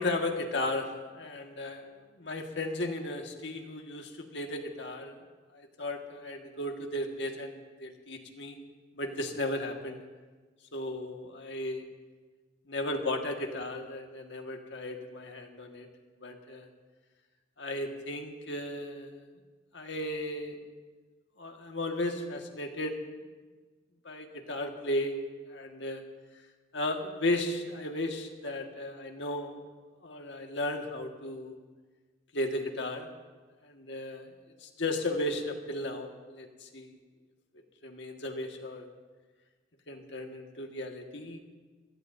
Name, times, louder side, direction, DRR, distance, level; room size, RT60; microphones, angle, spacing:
voice 1, 0.0-1.9 2.2-5.2 5.5-8.6 8.9-10.0 10.7-11.8 12.7-15.9 16.2-16.7 17.6-19.2 19.7-20.6 21.4-23.0 24.0-25.2 25.5-26.0 26.7-29.6 30.0-31.6 32.3-33.1 33.6-34.3 34.6-37.0 37.8-38.9 39.9-41.4, left 1 dB, 70° left, 3 dB, 1.7 m, -35 dB
26.5 x 16.5 x 2.7 m, 1.4 s
head